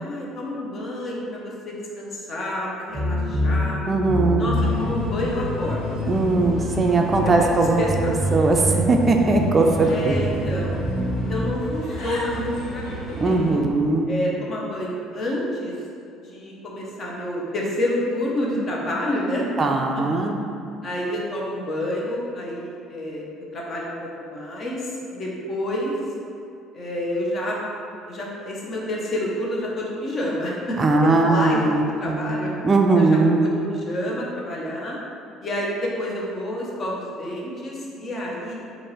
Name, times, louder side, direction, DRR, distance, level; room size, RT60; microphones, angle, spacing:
voice 1, 0.0-3.8 4.4-6.0 7.2-7.5 7.8-8.1 9.8-10.8 11.1-13.7 14.1-15.7 16.2-19.4 20.8-23.2 23.5-23.9 24.2-25.9 26.7-27.6 28.1-32.5 32.9-35.0 35.4-38.6, left 1 dB, 45° left, -3 dB, 0.9 m, -29 dB
sound 1, 2.9-11.5, equal, 15° right, 1.2 m, -26 dB
voice 2, 3.9-4.5 6.1-7.9 8.3-10.2 13.2-14.1 19.6-20.4 30.8-32.3 32.6-33.4, right 3 dB, 30° right, 2 dB, 0.3 m, -19 dB
Bird, 4.5-13.6, equal, 75° left, 1.1 m, -35 dB
4.4 x 2.5 x 3.2 m, 2.5 s
supercardioid pair, 85°, 0 cm